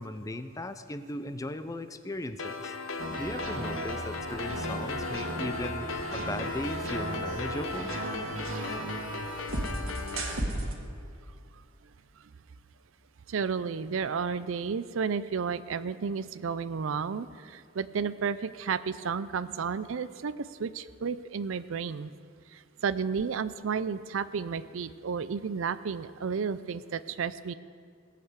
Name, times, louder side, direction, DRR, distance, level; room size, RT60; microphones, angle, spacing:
voice 1, 0.0-2.7 3.2-7.9, left 1 dB, 15° left, 11 dB, 0.5 m, -37 dB
sound 1, 2.4-10.4, left 3 dB, 80° left, 0.9 m, -37 dB
sound 2, 3.0-10.7, right 1 dB, 90° right, 1.8 m, -35 dB
voice 2, 13.3-22.1 22.5-27.5, right 6 dB, 70° right, 15 dB, 0.5 m, -32 dB
17.5 x 6.7 x 8.1 m, 2.2 s
head